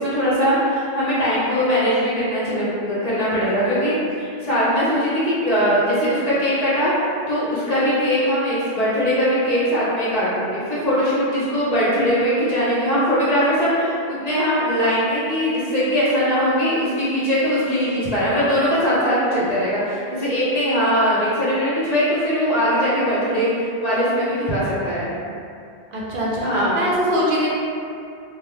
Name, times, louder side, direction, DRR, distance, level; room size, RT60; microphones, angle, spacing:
voice 1, 0.0-6.9 7.3-25.2 26.4-26.7, equal, 40° left, -10 dB, 0.9 m, -20 dB
voice 2, 25.9-27.5, equal, 65° right, -5 dB, 0.7 m, -22 dB
3.1 x 2.1 x 3.5 m, 2.5 s
omnidirectional pair, 1.0 m